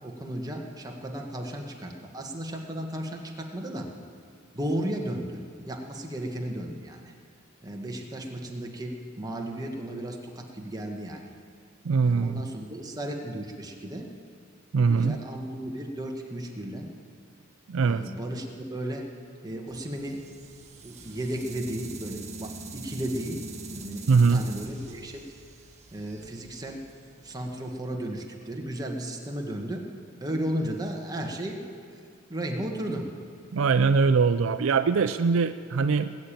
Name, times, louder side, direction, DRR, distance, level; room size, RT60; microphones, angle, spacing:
voice 1, 0.0-3.9 4.5-7.1 7.6-11.3 12.0-14.1 14.8-16.9 17.8-19.0 19.4-20.3 20.8-25.2 25.9-26.8 27.2-29.9 30.2-31.6 31.9-32.0 32.3-33.1, right 1 dB, 20° right, 1 dB, 1.5 m, -34 dB
voice 2, 11.8-12.4 14.7-15.2 17.7-18.1 24.1-24.4 33.5-36.2, right 5 dB, 70° right, 11 dB, 0.4 m, -22 dB
sound 1, 19.7-27.8, right 2 dB, 35° right, 1.4 m, -43 dB
19.5 x 7.0 x 9.0 m, 2.1 s
head